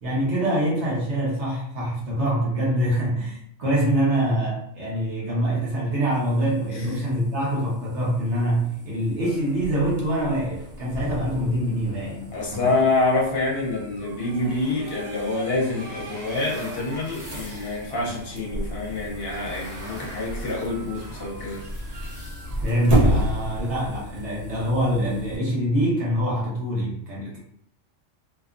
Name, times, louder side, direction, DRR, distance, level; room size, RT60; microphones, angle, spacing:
voice 1, 0.0-12.6 17.9-18.1 22.6-27.4, right 1 dB, 65° right, -5 dB, 1.1 m, -25 dB
sound 1, 6.1-25.4, left 2 dB, 80° right, 1.1 m, -45 dB
sound 2, 9.2-24.2, equal, 45° right, 0.5 m, -32 dB
voice 2, 12.3-21.6, left 2 dB, 55° left, -3 dB, 0.9 m, -26 dB
sound 3, 14.4-24.0, equal, 30° left, 1.4 m, -47 dB
2.8 x 2.3 x 2.4 m, 0.71 s
omnidirectional pair, 1.4 m